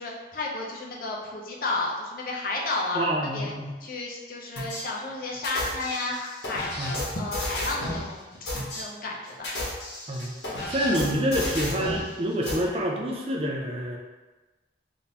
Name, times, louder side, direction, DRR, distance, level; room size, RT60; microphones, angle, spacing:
voice 1, 0.0-3.5 3.8-6.8 7.1-9.5, left 2 dB, 50° left, -2 dB, 0.6 m, -32 dB
voice 2, 2.9-3.7 6.8-7.0 10.1-14.0, equal, 30° right, 0 dB, 0.4 m, -27 dB
sound 1, 4.6-4.8 5.4-8.1 8.5-8.8 9.3-12.1 12.5-12.6, left 1 dB, 75° left, 1.1 m, -32 dB
3.6 x 2.6 x 2.8 m, 1.2 s
head